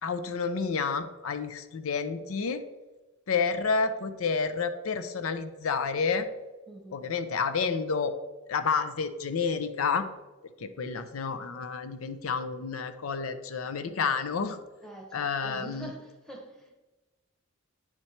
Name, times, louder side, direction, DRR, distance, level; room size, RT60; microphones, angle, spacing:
voice 1, 0.0-2.6 3.3-6.3 6.9-8.1 8.5-10.1 10.6-14.6 15.1-15.9, left 5 dB, 90° left, 11 dB, 0.5 m, -30 dB
voice 2, 6.7-7.1 14.8-16.7, right 1 dB, ahead, 0 dB, 1.1 m, -45 dB
9.0 x 4.4 x 4.3 m, 1.2 s
head